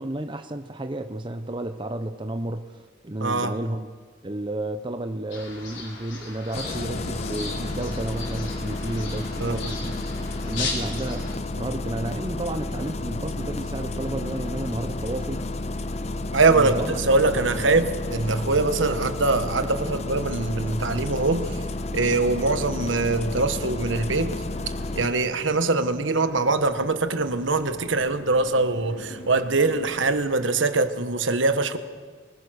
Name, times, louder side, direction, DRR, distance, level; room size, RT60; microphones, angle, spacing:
voice 1, 0.0-2.8 3.0-3.9 4.2-10.1 10.5-11.3 11.6-15.4 16.5-17.0 17.6-17.7, right 1 dB, 25° right, 8 dB, 0.7 m, -32 dB
voice 2, 3.2-3.5 9.4-9.7 16.3-21.6 21.9-24.4 24.9-31.8, right 3 dB, 75° right, 9 dB, 1.4 m, -23 dB
sound 1, 5.3-11.4, left 3 dB, 65° left, 4.8 m, -37 dB
Engine starting, 6.5-25.1, left 2 dB, 35° left, 0.5 m, -31 dB
sound 2, 11.2-30.2, equal, 85° left, 3.3 m, -47 dB
25.0 x 20.0 x 6.5 m, 1.5 s
head